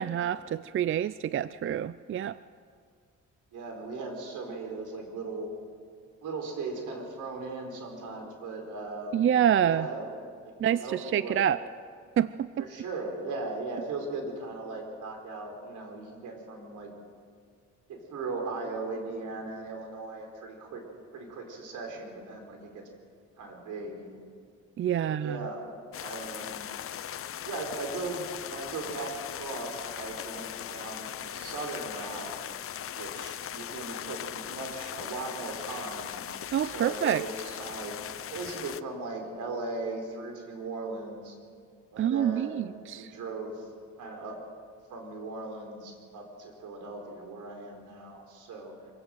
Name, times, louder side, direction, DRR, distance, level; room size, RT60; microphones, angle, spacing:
voice 1, 0.0-2.4 9.1-9.9 10.6-11.6 12.2-12.7 24.8-25.4 36.5-37.2 42.0-43.1, right 10 dB, 45° right, 16 dB, 0.5 m, -27 dB
voice 2, 3.5-5.5 6.2-9.3 9.6-10.1 10.4-11.4 12.6-16.9 17.9-20.8 21.1-22.8 23.4-24.2 25.0-26.7 27.4-32.3 32.9-36.2 36.6-38.0 38.3-41.4 41.9-43.7 44.0-44.4 44.9-48.7, right 3 dB, 80° right, 3 dB, 4.7 m, -38 dB
sound 1, 25.9-38.8, left 10 dB, 45° left, 0.6 m, -39 dB
24.5 x 16.5 x 7.9 m, 2.1 s
cardioid pair, 90°, 30 cm